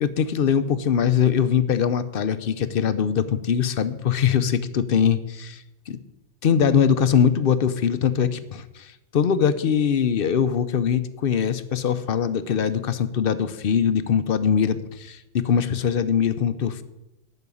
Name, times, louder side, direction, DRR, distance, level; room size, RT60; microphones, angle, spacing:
voice 1, 0.0-6.0 6.4-16.8, left 7 dB, 55° left, 12 dB, 0.8 m, -22 dB
11.0 x 5.7 x 8.4 m, 0.94 s
omnidirectional pair, 1.2 m